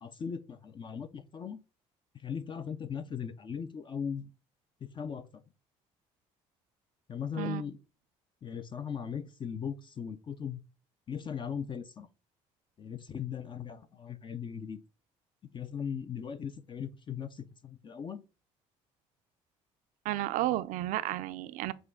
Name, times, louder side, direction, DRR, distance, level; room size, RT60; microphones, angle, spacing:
voice 1, 0.0-1.6 2.2-4.3 4.8-5.4 7.1-7.8 8.4-10.6 11.1-12.1 12.8-14.8 15.5-18.2, left 7 dB, 35° left, 0.5 m, -38 dB
voice 2, 20.0-21.7, right 15 dB, 75° right, 0.4 m, -32 dB
6.2 x 2.3 x 3.6 m
supercardioid pair, 80°, 14 cm